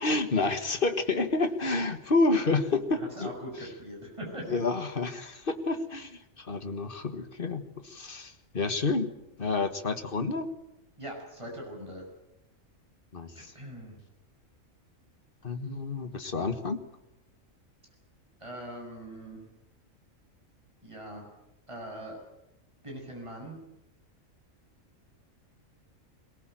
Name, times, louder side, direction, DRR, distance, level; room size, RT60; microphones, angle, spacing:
voice 1, 0.0-3.3 4.5-9.1 9.4-10.5 13.1-13.5 15.4-16.8, left 3 dB, 40° left, 8 dB, 1.8 m, -29 dB
voice 2, 2.9-4.6 11.0-12.0 13.4-14.0 18.4-19.4 20.8-21.2 21.7-22.2 22.8-23.6, right 1 dB, 20° right, 0 dB, 7.0 m, -41 dB
22.5 x 18.0 x 9.1 m, 0.88 s
omnidirectional pair, 1.4 m